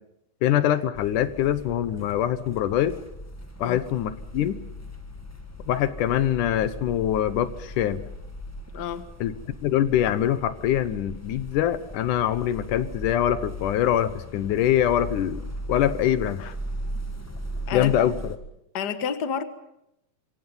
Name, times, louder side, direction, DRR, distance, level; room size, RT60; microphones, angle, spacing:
voice 1, 0.4-2.9 3.6-4.6 5.7-8.0 9.2-9.3 9.6-15.4 15.7-16.5 17.7-18.4, left 11 dB, 80° left, 13 dB, 2.5 m, -24 dB
sound 1, 0.9-18.4, equal, 10° left, 0.6 m, -38 dB
voice 2, 8.7-9.1 17.7-17.9 18.7-19.4, left 7 dB, 45° left, 10 dB, 1.5 m, -29 dB
26.5 x 24.0 x 5.6 m, 0.82 s
omnidirectional pair, 3.7 m